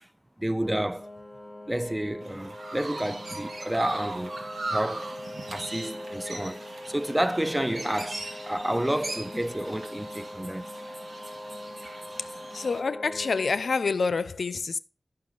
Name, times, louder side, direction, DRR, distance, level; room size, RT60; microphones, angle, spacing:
voice 1, 0.4-1.1 1.7-4.4 4.7-5.2 5.5-10.7, right 1 dB, 10° right, 0.4 m, -30 dB
sound 1, 0.6-13.5, left 1 dB, 10° left, 1.5 m, -42 dB
Chirp tweet, 2.2-12.8, right 2 dB, 75° right, 1.4 m, -39 dB
voice 2, 12.5-14.8, left 4 dB, 90° left, 0.4 m, -27 dB
9.4 x 5.6 x 3.8 m
wide cardioid pair, 75°, 0 cm